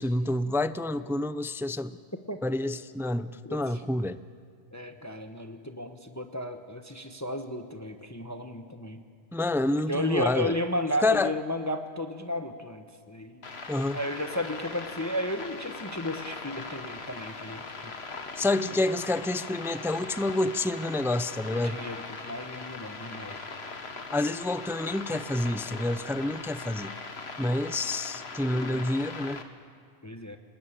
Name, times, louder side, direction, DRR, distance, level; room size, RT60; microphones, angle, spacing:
voice 1, 0.0-2.0 2.4-4.2 9.3-10.6 11.0-11.3 13.7-14.0 18.4-21.8 24.1-26.9 27.4-29.4, left 2 dB, 5° right, 13 dB, 0.3 m, -28 dB
voice 2, 3.4-3.8 4.7-9.0 9.9-13.4 13.9-17.9 21.5-23.5 28.5-28.9 30.0-30.4, left 1 dB, 15° left, 6 dB, 1.1 m, -34 dB
sound 1, 13.4-29.4, left 4 dB, 75° left, 1.8 m, -40 dB
29.0 x 20.0 x 8.9 m, 2.1 s
omnidirectional pair, 1.1 m